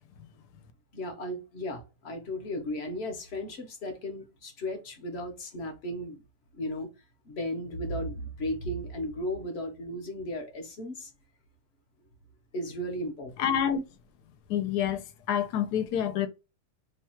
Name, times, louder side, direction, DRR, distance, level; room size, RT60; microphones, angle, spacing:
voice 1, 0.9-6.2 6.5-6.9 7.2-11.1 12.5-13.5, equal, 50° left, 0.9 m, -35 dB
voice 2, 13.4-13.8 14.5-16.3, left 9 dB, 75° left, 1.1 m, -27 dB
3.0 x 2.3 x 4.3 m
omnidirectional pair, 1.8 m